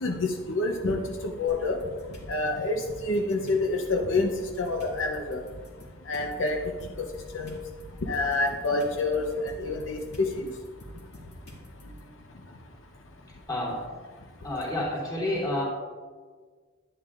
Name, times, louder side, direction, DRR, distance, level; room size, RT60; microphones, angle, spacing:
voice 1, 0.0-1.0 1.4-1.8 2.3-4.3 4.6-5.4 6.1-6.6 7.0-7.1 7.3-7.6 8.0-10.5, left 2 dB, 75° left, 2 dB, 0.7 m, -27 dB
sound 1, 1.5-2.3 2.8-12.0, equal, 55° left, 2.2 m, -48 dB
voice 2, 13.5-13.8 14.4-15.6, left 1 dB, 20° left, -6 dB, 3.0 m, -29 dB
10.5 x 10.0 x 2.5 m, 1.5 s
head